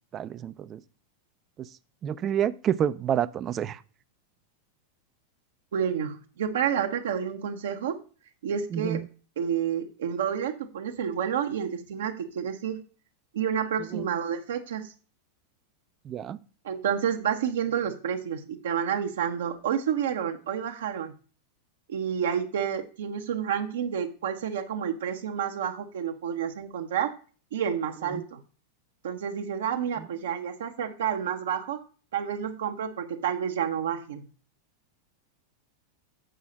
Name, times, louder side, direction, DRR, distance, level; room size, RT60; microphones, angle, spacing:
voice 1, 0.1-0.8 1.6-1.7 2.0-3.8 8.7-9.1 13.8-14.1 16.0-16.4 28.1-28.2 30.0-30.1, right 9 dB, 30° right, 0.4 m, -29 dB
voice 2, 5.7-8.0 8.4-9.0 9.4-12.8 13.3-14.9 16.6-21.1 21.9-27.1 27.5-28.4 29.0-31.8 32.1-34.2, right 8 dB, 60° right, 0.7 m, -29 dB
7.8 x 5.6 x 5.0 m
figure-of-eight pair, 90°, 0 cm